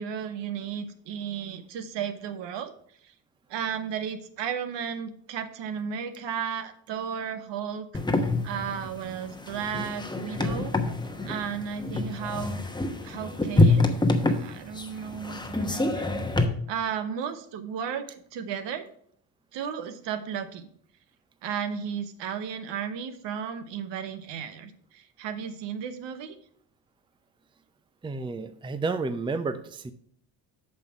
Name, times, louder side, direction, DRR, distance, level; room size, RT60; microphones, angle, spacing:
voice 1, 0.0-2.7 3.0-3.1 3.5-8.0 8.4-10.7 11.2-12.6 13.0-13.9 14.2-16.1 16.7-18.8 19.5-20.7 21.4-26.4, right 7 dB, 60° right, 10 dB, 1.0 m, -34 dB
sound 1, 7.9-16.5, left 2 dB, 10° left, 1.0 m, -26 dB
voice 2, 28.0-29.9, right 3 dB, 10° right, 12 dB, 0.5 m, -31 dB
6.5 x 5.2 x 5.9 m, 0.62 s
hypercardioid pair, 55°, 48 cm